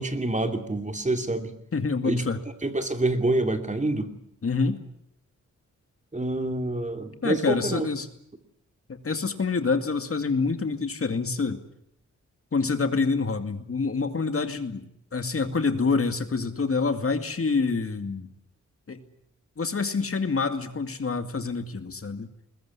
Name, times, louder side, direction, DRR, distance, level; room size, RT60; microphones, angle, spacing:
voice 1, 0.0-1.5 2.0-2.2 2.6-4.1 6.1-7.9, right 2 dB, 25° right, 7 dB, 2.7 m, -27 dB
voice 2, 1.7-2.4 4.4-4.8 7.2-8.1 8.9-11.6 12.5-14.9 15.1-18.3 18.9-19.0 19.6-22.3, left 4 dB, 50° left, 8 dB, 2.3 m, -26 dB
21.5 x 20.5 x 9.7 m, 0.72 s
wide cardioid pair, 95°, 29 cm